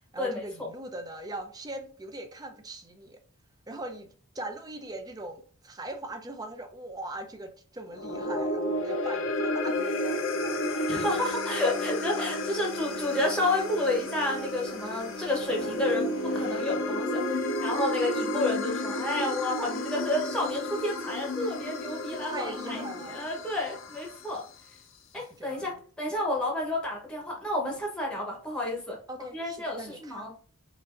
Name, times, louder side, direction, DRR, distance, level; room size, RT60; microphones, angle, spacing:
voice 1, 0.1-3.2 3.7-4.1 4.3-11.0 22.2-23.2 25.1-25.8 29.1-30.3, right 1 dB, 15° right, 0.4 m, -40 dB
sound 1, 7.9-24.4, left 1 dB, 60° left, 0.5 m, -32 dB
voice 2, 10.7-17.2 17.6-22.8 23.1-24.4 25.1-29.0 29.3-30.3, left 1 dB, 5° left, 0.9 m, -30 dB
sound 2, 10.9-16.8, left 2 dB, 40° right, 1.8 m, -47 dB
5.0 x 2.5 x 2.5 m
head